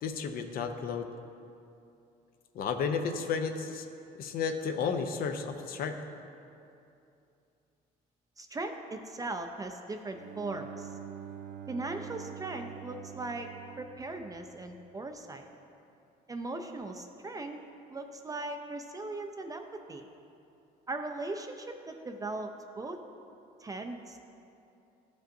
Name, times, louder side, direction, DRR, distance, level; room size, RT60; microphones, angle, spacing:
voice 1, 0.0-1.1 2.5-3.9 4.2-5.9, left 5 dB, 60° left, 7 dB, 0.6 m, -32 dB
voice 2, 8.4-11.0 11.7-13.5 13.8-15.5 16.3-17.6 17.9-20.1 20.9-23.0 23.6-24.3, right 2 dB, 20° right, 5 dB, 0.4 m, -39 dB
Bowed string instrument, 10.1-14.9, right 9 dB, 90° right, 0.5 m, -46 dB
12.5 x 5.1 x 2.6 m, 2.7 s
cardioid pair, 110°, 17 cm